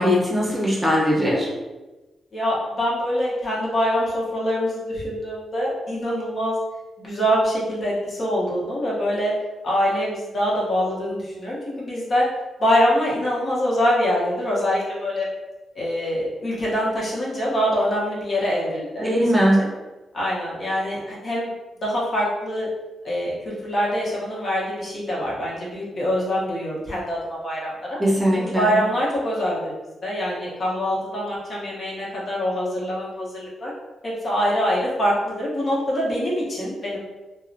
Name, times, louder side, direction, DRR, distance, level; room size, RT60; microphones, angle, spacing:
voice 1, 0.0-1.5 19.0-19.7 28.0-28.8, equal, 15° right, -4 dB, 0.7 m, -20 dB
voice 2, 2.3-6.6 7.0-9.3 9.6-12.3 12.6-15.3 15.7-19.1 19.6-19.7 20.1-21.5 21.8-22.7 23.0-28.0 28.4-29.7 30.0-33.7 34.0-37.0, equal, 50° left, -6 dB, 0.9 m, -24 dB
2.6 x 2.1 x 2.5 m, 1.1 s
cardioid pair, 75°, 0 cm